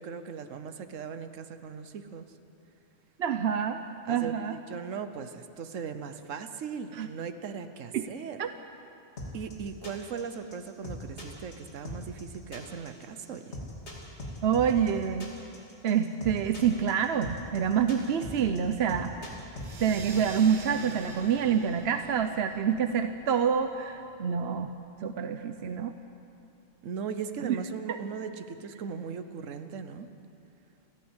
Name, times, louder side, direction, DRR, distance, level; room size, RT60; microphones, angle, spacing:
voice 1, 0.0-2.3 4.0-8.4 9.3-13.6 26.8-30.1, right 6 dB, 85° right, 9 dB, 1.3 m, -38 dB
voice 2, 3.2-3.8 4.1-4.6 6.9-7.1 7.9-8.1 8.4-8.5 14.4-15.3 15.8-19.2 19.8-24.7 25.0-25.9 27.4-27.6 27.9-28.0, right 7 dB, 60° right, 8 dB, 0.9 m, -27 dB
sound 1, 9.2-19.7, left 1 dB, 60° left, 3.2 m, -40 dB
sound 2, 19.6-24.7, right 4 dB, 45° right, 1.1 m, -45 dB
29.5 x 11.5 x 8.0 m, 2.7 s
omnidirectional pair, 1.3 m